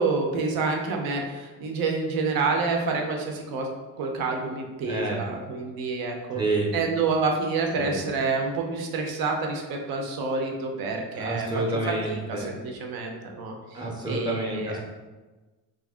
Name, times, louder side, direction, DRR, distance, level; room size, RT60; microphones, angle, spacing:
voice 1, 0.0-3.7 4.0-6.4 6.7-11.8 12.1-13.5 14.1-14.8, right 4 dB, 85° right, 2 dB, 0.7 m, -28 dB
voice 2, 4.9-5.2 6.3-6.7 7.8-8.0 11.1-12.5 13.7-14.8, right 2 dB, 10° right, -3 dB, 0.6 m, -29 dB
2.9 x 2.6 x 3.5 m, 1.2 s
cardioid pair, 115°, 35 cm